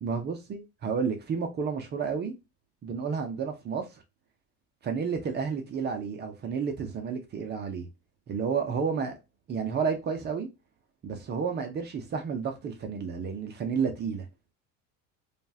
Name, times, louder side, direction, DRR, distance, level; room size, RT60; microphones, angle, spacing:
voice 1, 0.0-2.3 2.8-3.9 4.8-7.9 8.3-9.2 9.5-10.5 11.0-14.3, right 6 dB, 30° right, 0.7 m, -31 dB
5.1 x 2.4 x 2.7 m
cardioid pair, 170°, 34 cm